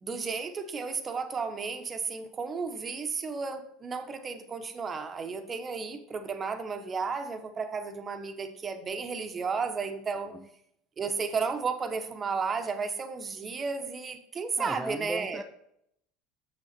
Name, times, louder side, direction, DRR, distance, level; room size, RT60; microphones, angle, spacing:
voice 1, 0.0-10.3 11.0-15.4, right 5 dB, 30° right, 1.0 m, -33 dB
voice 2, 10.1-10.5 14.6-15.4, right 1 dB, 5° right, 0.5 m, -37 dB
6.9 x 6.3 x 4.3 m
supercardioid pair, 105°, 0 cm